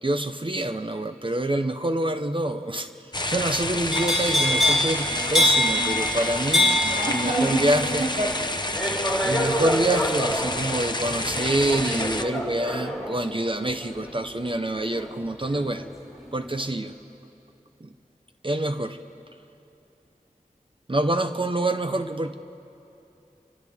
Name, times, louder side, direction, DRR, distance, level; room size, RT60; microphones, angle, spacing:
voice 1, 0.0-2.9 3.2-8.1 9.2-15.9 16.3-16.9 17.8-17.9 18.4-19.0 20.9-22.3, right 1 dB, 35° right, 7 dB, 0.7 m, -26 dB
sound 1, 3.1-12.2, left 1 dB, 30° left, 0.8 m, -29 dB
sound 2, 3.9-15.9 16.2-16.6, left 1 dB, ahead, 3.5 m, -26 dB
voice 2, 6.8-8.3, right 1 dB, 90° right, -5 dB, 3.0 m, -27 dB
29.0 x 25.0 x 3.6 m, 2.8 s
wide cardioid pair, 50°, 14 cm